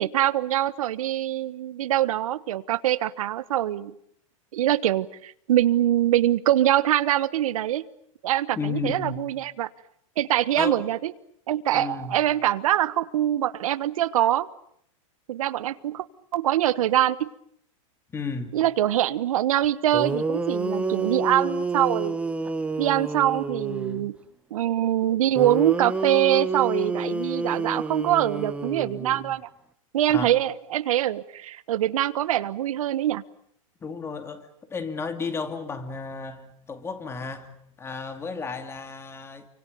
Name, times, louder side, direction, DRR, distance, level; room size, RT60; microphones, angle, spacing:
voice 1, 0.0-3.9 4.5-7.9 8.2-9.7 10.2-11.1 11.5-14.5 15.3-16.0 16.3-17.3 18.5-22.2 22.8-24.1 24.5-29.5 29.9-33.2, right 12 dB, 80° right, 1.3 m, -24 dB
voice 2, 8.6-9.3 10.6-10.9 11.7-12.2 18.1-18.6 30.1-30.3 33.8-39.5, left 5 dB, 15° left, 2.5 m, -33 dB
sound 1, 19.6-19.7 19.9-24.1 25.3-29.4, right 3 dB, 5° right, 1.2 m, -29 dB
29.0 x 25.0 x 7.0 m
supercardioid pair, 150°, 18 cm